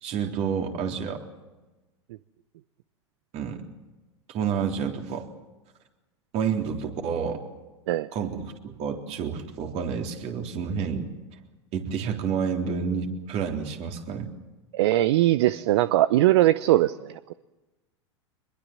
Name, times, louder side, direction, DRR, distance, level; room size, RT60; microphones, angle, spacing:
voice 1, 0.0-1.2 3.3-3.6 4.3-5.3 6.3-7.4 8.1-11.1 11.7-14.3, right 6 dB, 45° right, 3 dB, 3.7 m, -29 dB
voice 2, 14.7-17.3, right 15 dB, 65° right, 15 dB, 0.7 m, -21 dB
24.0 x 21.5 x 7.6 m, 1.1 s
hypercardioid pair, 90°, 15 cm